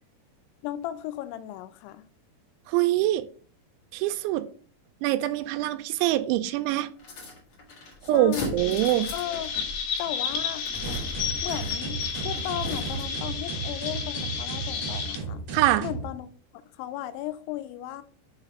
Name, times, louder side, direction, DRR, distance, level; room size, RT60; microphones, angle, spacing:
voice 1, 0.6-2.0 8.1-8.6 9.1-9.5 10.0-10.7 11.4-15.4 15.8-16.3 16.8-18.0, left 13 dB, 85° left, 2.9 m, -35 dB
voice 2, 2.7-3.2 3.9-4.4 5.0-6.9 8.1-9.1 15.5-15.9, right 14 dB, 90° right, 3.0 m, -24 dB
sound 1, 7.0-13.3, left 2 dB, 50° left, 1.6 m, -39 dB
Chirp tweet, 8.6-15.2, left 6 dB, 70° left, 2.7 m, -32 dB
sound 2, 10.8-16.1, right 4 dB, 60° right, 1.5 m, -35 dB
6.7 x 4.1 x 5.2 m
omnidirectional pair, 5.2 m